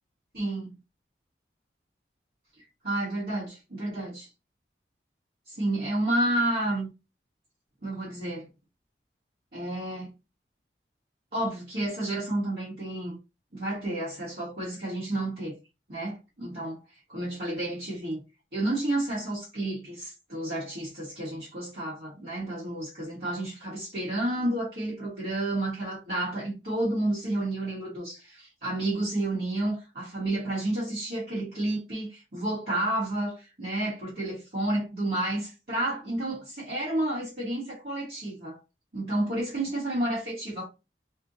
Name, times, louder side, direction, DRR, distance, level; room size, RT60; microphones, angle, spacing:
voice 1, 0.3-0.7 2.8-4.3 5.5-6.9 7.8-8.4 9.5-10.1 11.3-13.2 13.5-15.6 15.9-16.8 17.1-18.2 18.5-38.6 38.9-40.7, right 1 dB, 55° right, 1.3 m, -30 dB
4.2 x 2.1 x 2.6 m
head